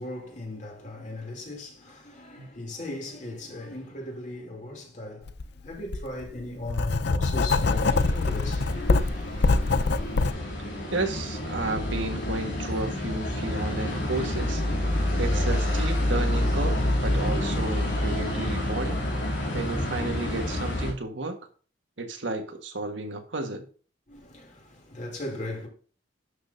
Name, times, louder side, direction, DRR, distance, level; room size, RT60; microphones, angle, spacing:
voice 1, 0.0-9.0 24.1-25.7, left 1 dB, 40° left, 3.0 m, -37 dB
Writing, 5.3-5.4 5.9-10.3, left 3 dB, 60° left, 0.5 m, -24 dB
sound 1, 7.6-20.9, left 1 dB, 80° left, 2.9 m, -28 dB
voice 2, 10.9-14.6 15.2-19.0 19.5-21.4 22.0-23.6, right 2 dB, 75° right, 1.6 m, -32 dB
11.5 x 6.4 x 2.7 m
head